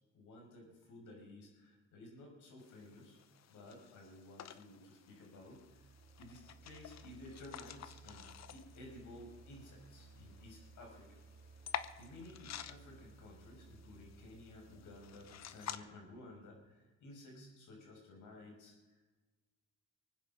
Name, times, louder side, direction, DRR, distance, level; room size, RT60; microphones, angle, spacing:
voice 1, 0.1-3.2 3.5-5.9 6.2-11.2 11.7-19.1, left 1 dB, 80° left, 1 dB, 5.7 m, -55 dB
sound 1, 2.6-15.8, left 10 dB, 60° left, 0.9 m, -51 dB
sound 2, 5.3-16.3, right 4 dB, 30° right, 2.3 m, -60 dB
23.5 x 9.5 x 5.5 m, 1.2 s
cardioid pair, 90°, 30 cm